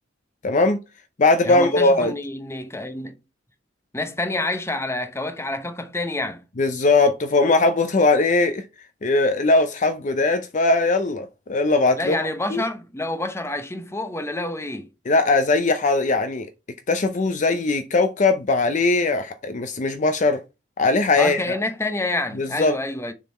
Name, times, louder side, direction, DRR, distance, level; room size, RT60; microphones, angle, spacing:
voice 1, 0.4-0.8 1.2-2.1 6.6-8.6 9.0-12.2 12.5-12.6 15.1-16.5 16.9-20.4 20.8-21.4 22.4-22.8, left 3 dB, 40° left, 0.6 m, -20 dB
voice 2, 1.4-3.2 3.9-6.4 12.0-14.9 21.2-23.1, left 2 dB, 15° left, 0.8 m, -28 dB
6.7 x 3.9 x 4.3 m
head